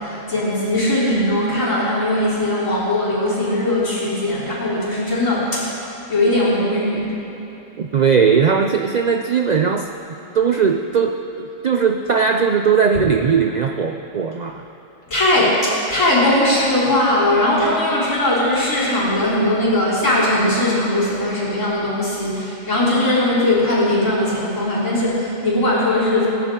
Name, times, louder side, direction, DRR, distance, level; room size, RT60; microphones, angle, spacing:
voice 1, 0.0-5.7 6.1-7.1 15.1-26.3, left 1 dB, 75° left, -8 dB, 4.0 m, -19 dB
voice 2, 7.8-9.9 10.3-14.7 15.4-15.5, right 6 dB, 60° right, 5 dB, 0.4 m, -18 dB
20.5 x 10.5 x 3.7 m, 2.9 s
omnidirectional pair, 1.3 m